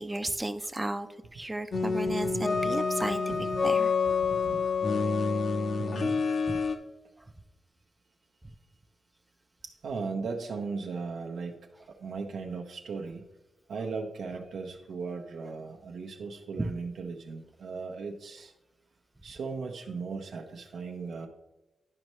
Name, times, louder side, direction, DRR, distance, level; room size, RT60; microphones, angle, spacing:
voice 1, 0.0-3.2 3.6-3.9 6.5-6.6 16.6-16.7, right 1 dB, 10° right, 10 dB, 0.4 m, -34 dB
sound 1, 1.7-6.8, left 4 dB, 50° left, 0.7 m, -28 dB
voice 2, 1.7-2.7 3.3-3.5 4.2-4.6 5.8-6.2 9.6-11.6 12.0-13.2 13.7-18.5 19.2-21.3, right 4 dB, 90° right, 1 dB, 0.7 m, -37 dB
11.0 x 5.4 x 3.1 m, 0.99 s
wide cardioid pair, 150°, 0 cm